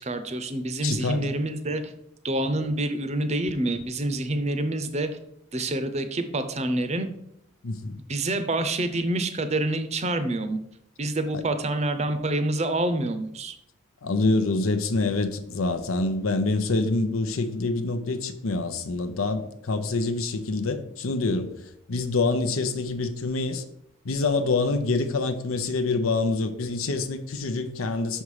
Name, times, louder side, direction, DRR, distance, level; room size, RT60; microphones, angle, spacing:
voice 1, 0.0-1.9 2.2-5.1 5.5-7.1 8.1-10.6 11.0-13.6, right 1 dB, 30° right, 0.6 m, -27 dB
voice 2, 0.8-1.3 7.6-8.0 11.3-11.5 14.0-21.5 21.9-23.6 24.0-28.2, left 3 dB, 90° left, 0.8 m, -26 dB
6.0 x 5.5 x 4.8 m
head